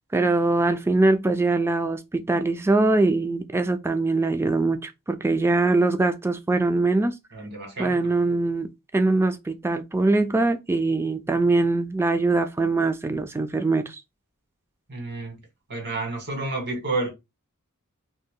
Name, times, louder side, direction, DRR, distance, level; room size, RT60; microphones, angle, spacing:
voice 1, 0.1-7.2 7.8-14.0, right 3 dB, 10° right, 0.3 m, -22 dB
voice 2, 7.3-8.1 14.9-15.4 15.7-17.1, right 2 dB, 50° right, 1.6 m, -30 dB
2.8 x 2.7 x 3.7 m
head